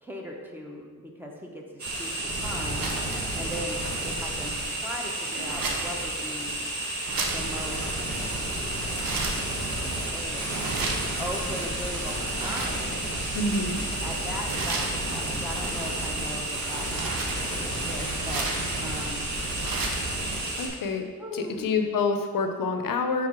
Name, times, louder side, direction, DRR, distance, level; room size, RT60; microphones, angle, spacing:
voice 1, 0.0-1.6 1.9-2.9 3.3-6.6 7.3-7.9 9.5-10.5 11.2-13.1 14.0-18.5 18.8-19.3 21.2-21.9, equal, 5° right, -1 dB, 0.8 m, -39 dB
sound 1, 1.8-20.7, right 1 dB, 55° right, 1.3 m, -31 dB
sound 2, 2.1-20.2, right 3 dB, 90° right, 0.8 m, -37 dB
voice 2, 13.3-13.8 20.6-21.1 21.3-23.3, left 4 dB, 75° left, 6 dB, 0.7 m, -27 dB
4.8 x 4.1 x 5.8 m, 1.5 s
wide cardioid pair, 125°, 34 cm